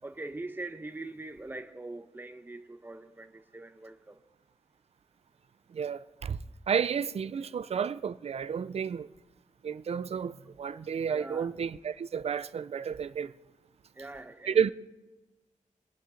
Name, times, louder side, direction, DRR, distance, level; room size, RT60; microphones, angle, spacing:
voice 1, 0.0-4.2 11.1-11.5 13.9-14.7, right 2 dB, 15° right, 0.9 m, -42 dB
voice 2, 5.7-6.4 6.7-9.1 9.6-13.3 14.5-14.7, right 7 dB, 50° right, 0.4 m, -31 dB
23.5 x 8.1 x 3.9 m
wide cardioid pair, 155°, 13 cm